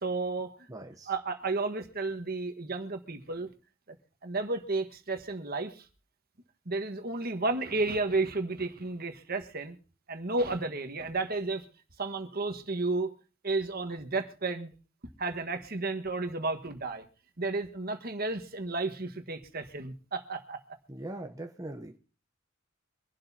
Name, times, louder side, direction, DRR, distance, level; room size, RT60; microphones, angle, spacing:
voice 1, 0.0-0.5 1.1-3.5 4.2-5.8 6.6-9.7 10.1-11.6 12.0-13.1 13.4-14.7 15.2-17.0 17.4-20.6, right 3 dB, 50° right, 6 dB, 1.5 m, -32 dB
voice 2, 0.7-1.1 20.9-22.0, right 1 dB, 15° right, 3 dB, 0.9 m, -41 dB
25.0 x 11.5 x 2.8 m, 0.35 s
head